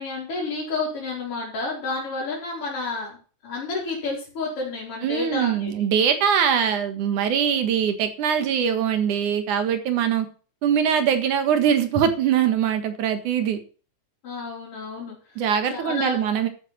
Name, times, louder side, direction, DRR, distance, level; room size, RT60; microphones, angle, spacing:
voice 1, 0.0-3.2 3.4-5.7 14.2-15.4 15.7-16.2, left 3 dB, 50° left, -5 dB, 5.6 m, -30 dB
voice 2, 5.0-10.3 10.6-13.6 15.4-16.5, right 8 dB, 85° right, 8 dB, 3.1 m, -22 dB
13.0 x 9.0 x 4.4 m, 0.38 s
omnidirectional pair, 3.4 m